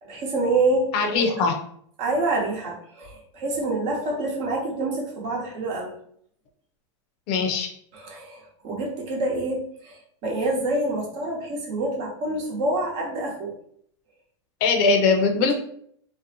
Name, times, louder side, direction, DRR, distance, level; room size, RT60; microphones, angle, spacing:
voice 1, 0.0-1.1 2.0-5.9 7.9-13.5, right 2 dB, 50° right, -1 dB, 0.9 m, -27 dB
voice 2, 0.9-1.6 7.3-7.7 14.6-15.5, left 4 dB, 50° left, 4 dB, 0.5 m, -21 dB
2.6 x 2.0 x 2.7 m, 0.64 s
hypercardioid pair, 115°, 15 cm